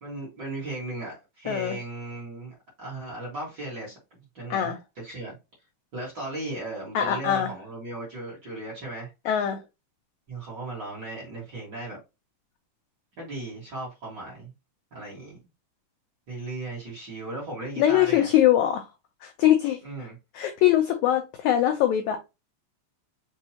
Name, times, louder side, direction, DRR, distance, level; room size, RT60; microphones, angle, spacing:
voice 1, 0.0-4.0 4.3-5.4 5.9-9.1 10.3-12.0 13.2-14.5 14.9-15.4 16.3-18.3 19.8-20.2, right 2 dB, 40° right, 1.6 m, -36 dB
voice 2, 1.5-1.8 4.5-4.8 6.9-7.5 9.3-9.6 17.8-18.9 19.2-20.1 20.3-22.3, left 11 dB, 90° left, 1.6 m, -22 dB
5.9 x 2.7 x 2.8 m
omnidirectional pair, 4.0 m